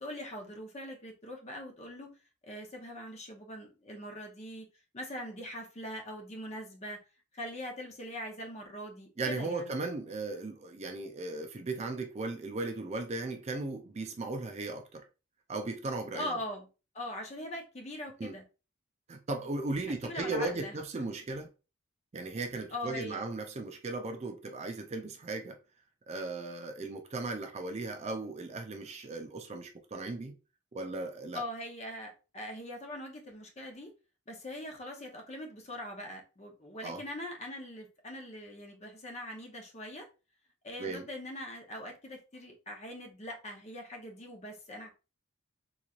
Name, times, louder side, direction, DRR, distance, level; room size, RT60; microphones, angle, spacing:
voice 1, 0.0-2.1 2.4-4.7 4.9-7.0 7.3-9.7 16.1-16.7 16.9-18.4 19.9-20.8 22.7-23.2 31.3-33.9 34.3-40.1 40.6-44.9, left 1 dB, 35° left, 0.8 m, -42 dB
voice 2, 9.2-15.0 15.5-16.3 18.2-18.4 19.1-21.5 22.1-25.6 26.1-30.3 30.7-31.4 36.8-37.0 40.8-41.1, right 2 dB, 30° right, 0.4 m, -37 dB
3.9 x 3.1 x 2.4 m
head